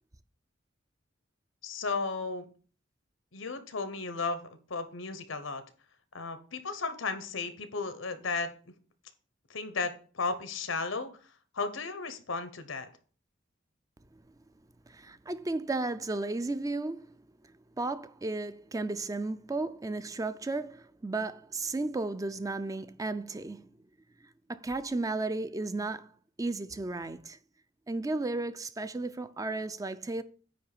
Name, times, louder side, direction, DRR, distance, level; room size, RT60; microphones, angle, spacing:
voice 1, 1.6-2.5 3.3-5.6 6.1-8.5 9.5-11.1 11.5-12.9, left 4 dB, 90° left, 1.1 m, -34 dB
voice 2, 14.9-17.2 17.8-23.7 24.5-26.1 26.4-27.4 27.9-30.2, right 2 dB, 20° right, 0.4 m, -34 dB
9.4 x 3.1 x 6.7 m
head